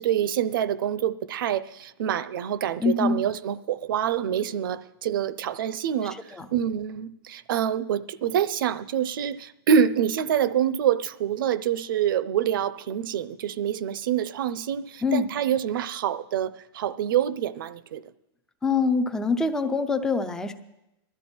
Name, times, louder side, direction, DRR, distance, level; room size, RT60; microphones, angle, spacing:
voice 1, 0.0-6.2 6.5-18.0, right 9 dB, 55° right, 0.7 m, -26 dB
voice 2, 2.8-3.2 6.3-6.5 15.0-15.3 18.6-20.5, left 4 dB, 5° left, 0.5 m, -24 dB
21.0 x 12.5 x 4.4 m
supercardioid pair, 175°, 14 cm